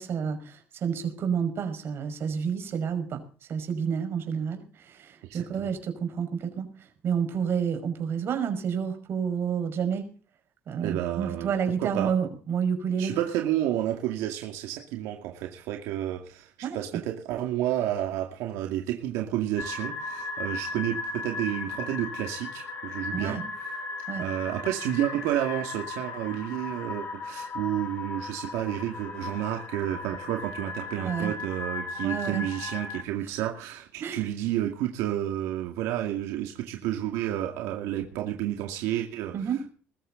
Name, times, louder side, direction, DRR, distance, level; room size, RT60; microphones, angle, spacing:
voice 1, 0.0-3.2 3.5-6.7 7.0-10.1 10.7-13.2 16.6-17.0 23.1-23.4 24.1-24.2 31.0-31.3 32.0-32.4 34.0-34.2 39.3-39.6, right 7 dB, 50° right, 6 dB, 5.7 m, -29 dB
voice 2, 10.8-11.5 11.8-12.2 13.0-23.4 24.2-39.7, right 12 dB, 85° right, 3 dB, 2.3 m, -30 dB
sound 1, 19.6-33.0, left 4 dB, 40° left, 4.9 m, -36 dB
21.5 x 14.0 x 4.0 m, 0.40 s
cardioid pair, 115°, 5 cm